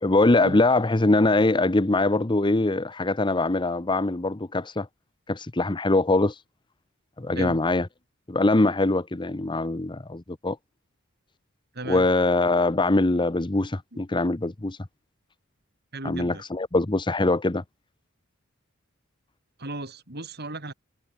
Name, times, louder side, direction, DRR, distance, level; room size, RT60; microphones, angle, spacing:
voice 1, 0.0-4.9 5.3-6.4 7.2-7.9 8.3-10.6 11.9-14.8 16.0-17.6, left 2 dB, 20° left, 0.8 m, -23 dB
voice 2, 11.7-12.1 13.9-14.0 15.9-16.4 19.6-20.7, right 2 dB, 50° right, 5.6 m, -35 dB
head